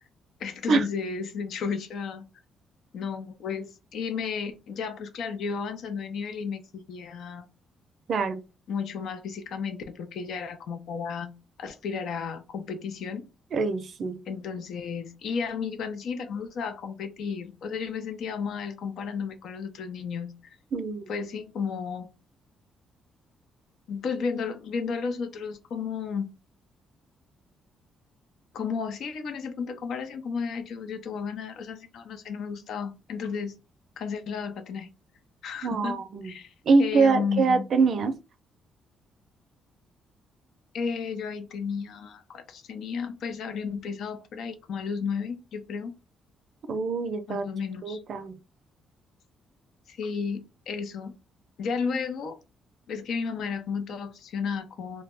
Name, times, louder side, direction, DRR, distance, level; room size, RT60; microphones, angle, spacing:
voice 1, 0.4-2.2 2.9-7.5 8.7-11.3 11.6-13.3 14.3-20.3 21.1-22.1 23.9-26.3 28.5-33.5 34.0-34.9 35.4-36.5 36.8-37.6 40.7-45.9 47.3-48.0 49.9-51.1 51.6-52.4 52.9-55.0, left 5 dB, 75° left, 0.5 m, -33 dB
voice 2, 8.1-8.4 13.5-14.2 20.7-21.1 35.6-36.3 36.7-38.2 46.7-47.4 47.8-48.4, right 4 dB, 60° right, 0.4 m, -24 dB
2.1 x 2.0 x 3.5 m
cardioid pair, 90°, 0 cm